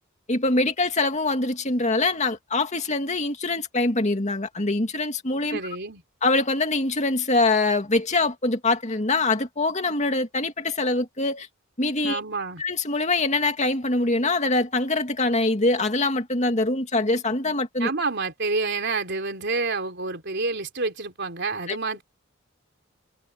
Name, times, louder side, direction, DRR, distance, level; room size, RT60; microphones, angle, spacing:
voice 1, 0.3-5.6 6.2-11.5 11.8-12.2 12.6-17.9 21.7-21.8, left 2 dB, 35° left, 2.3 m, -24 dB
voice 2, 5.5-6.0 12.0-12.6 17.8-22.0, right 3 dB, 60° right, 3.7 m, -28 dB
head